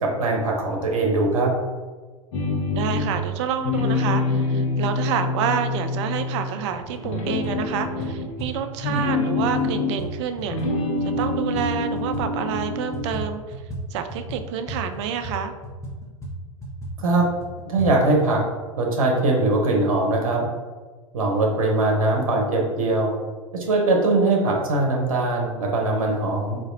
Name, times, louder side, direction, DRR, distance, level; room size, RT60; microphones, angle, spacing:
voice 1, 0.0-1.5 17.0-17.2 17.7-18.4 18.8-20.4 21.1-23.1 23.5-26.6, right 2 dB, 75° right, 0 dB, 0.8 m, -21 dB
sound 1, 2.3-3.3 3.6-6.6 7.0-10.1 10.4-13.2, left 3 dB, 65° left, 0.8 m, -26 dB
voice 2, 2.7-10.6 11.0-13.4 13.9-15.5, right 8 dB, 55° right, 8 dB, 0.4 m, -28 dB
sound 2, 6.7-7.0 7.2-12.3 12.5-17.9, right 1 dB, 15° left, 0.9 m, -35 dB
4.0 x 2.5 x 2.5 m, 1.4 s
hypercardioid pair, 90°, 18 cm